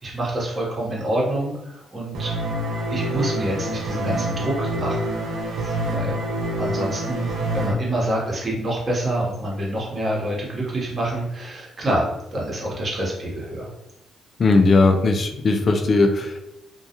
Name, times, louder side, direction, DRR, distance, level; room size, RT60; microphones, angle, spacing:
voice 1, 0.0-2.3 2.9-5.0 5.6-6.1 6.6-12.0 12.3-13.7, right 1 dB, 35° right, -4 dB, 1.0 m, -27 dB
sound 1, 2.1-7.7, right 1 dB, 80° right, 0.6 m, -26 dB
voice 2, 14.4-16.4, left 3 dB, 45° left, 4 dB, 0.4 m, -18 dB
2.2 x 2.2 x 2.8 m, 0.85 s
cardioid pair, 90°, 0 cm